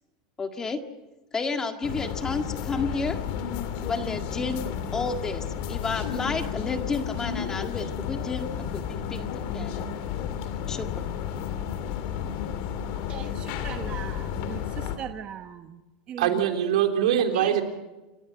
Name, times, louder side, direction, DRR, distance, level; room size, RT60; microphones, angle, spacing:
voice 1, 0.4-0.8 1.3-3.2 3.9-4.6 4.9-9.8 10.7-10.9, left 4 dB, 15° left, 6 dB, 1.8 m, -31 dB
sound 1, 1.8-15.0, left 8 dB, 55° left, 2.5 m, -32 dB
voice 2, 12.9-15.8 16.1-16.5 17.1-17.6, right 9 dB, 30° right, 7 dB, 1.2 m, -39 dB
voice 3, 16.2-17.6, right 9 dB, 85° right, 5 dB, 3.5 m, -23 dB
28.5 x 15.0 x 8.0 m, 1.1 s
supercardioid pair, 145°, 3 cm